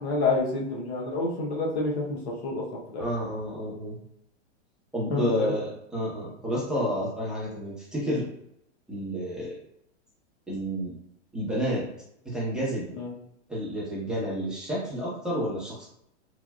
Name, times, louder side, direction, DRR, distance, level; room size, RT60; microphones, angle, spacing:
voice 1, 0.0-3.1 5.1-5.5 13.0-13.1, left 3 dB, 65° left, -2 dB, 1.0 m, -28 dB
voice 2, 3.0-4.0 4.9-8.2 8.9-9.5 10.5-10.9 11.3-11.8 12.2-12.9 13.5-15.9, equal, ahead, -8 dB, 1.0 m, -30 dB
3.3 x 2.4 x 2.4 m, 0.76 s
hypercardioid pair, 125°, 34 cm